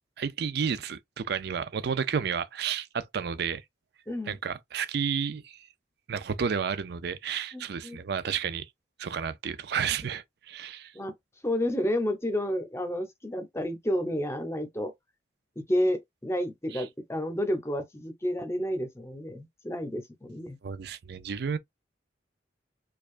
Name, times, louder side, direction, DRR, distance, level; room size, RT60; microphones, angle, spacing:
voice 1, 0.2-3.6 4.3-5.7 6.1-8.7 9.0-10.9 16.7-16.8 20.6-21.6, right 7 dB, 60° right, 0.4 m, -31 dB
voice 2, 4.1-4.4 7.5-8.0 10.9-11.1 11.4-14.9 15.7-20.6, equal, 15° left, 0.7 m, -30 dB
4.6 x 2.3 x 2.4 m
head